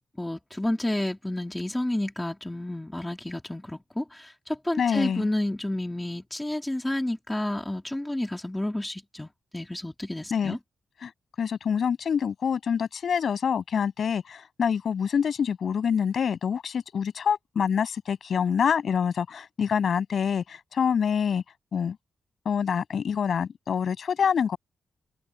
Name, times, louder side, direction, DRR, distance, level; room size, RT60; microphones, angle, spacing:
voice 1, 0.2-10.6, left 1 dB, 10° left, 3.0 m, -30 dB
voice 2, 4.8-5.3 10.3-10.6 11.0-11.1 11.4-21.4 21.7-22.0 22.5-24.6, left 7 dB, 55° left, 7.3 m, -26 dB
wide cardioid pair, 175°, 0 cm